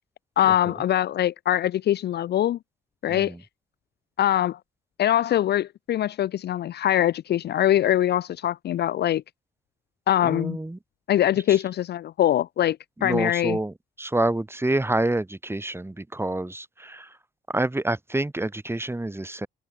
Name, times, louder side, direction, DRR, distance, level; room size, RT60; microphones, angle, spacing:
voice 1, 0.4-2.6 3.0-3.3 4.2-4.6 5.0-9.2 10.1-10.6 11.1-13.6, left 12 dB, 55° left, 0.5 m, -23 dB
voice 2, 3.1-3.4 10.2-10.8 11.5-11.6 13.0-17.2 17.5-19.5, right 2 dB, 10° right, 7.3 m, -28 dB
open air
cardioid pair, 90°, 20 cm